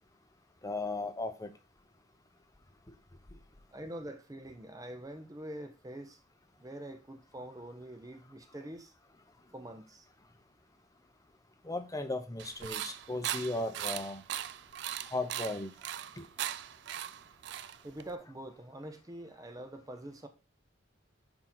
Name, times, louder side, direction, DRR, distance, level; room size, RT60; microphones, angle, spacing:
voice 1, 0.6-1.5 11.6-14.2 15.1-15.7 16.2-16.3, left 2 dB, 20° left, 0.7 m, -36 dB
voice 2, 3.7-6.2 6.6-8.9 9.5-10.1 17.8-20.3, right 1 dB, 20° right, 0.7 m, -45 dB
sound 1, 12.4-18.1, right 11 dB, 65° right, 0.3 m, -39 dB
5.8 x 4.4 x 3.9 m
head